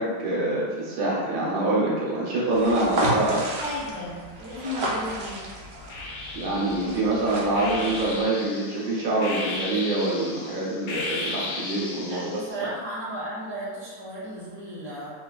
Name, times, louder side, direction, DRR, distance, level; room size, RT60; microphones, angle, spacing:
voice 1, 0.0-3.4 6.3-12.3, right 2 dB, 90° right, -5 dB, 1.6 m, -25 dB
sound 1, 2.5-8.2, right 1 dB, 60° right, 0.9 m, -32 dB
voice 2, 3.3-5.4 12.0-15.1, equal, 55° left, -10 dB, 0.4 m, -35 dB
sound 2, 4.5-5.3 5.9-12.5, left 2 dB, 85° left, 1.4 m, -35 dB
3.8 x 3.2 x 2.3 m, 1.5 s
omnidirectional pair, 2.0 m